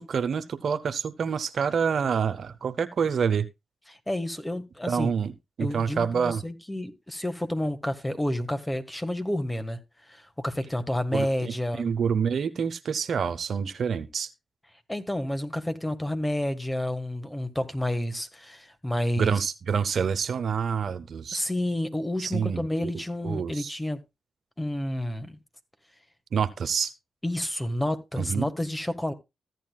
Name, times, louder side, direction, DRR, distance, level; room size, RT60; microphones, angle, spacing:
voice 1, 0.0-3.5 4.9-5.3 5.6-6.4 11.1-14.3 19.2-21.4 22.2-22.9 23.2-23.7 26.3-26.9 28.2-28.5, right 6 dB, 65° right, 0.6 m, -27 dB
voice 2, 3.9-5.1 5.6-9.8 10.1-11.9 14.9-19.4 21.3-24.0 24.6-25.4 27.2-29.1, left 1 dB, 10° left, 1.5 m, -30 dB
14.5 x 9.1 x 2.3 m
supercardioid pair, 50°, 0 cm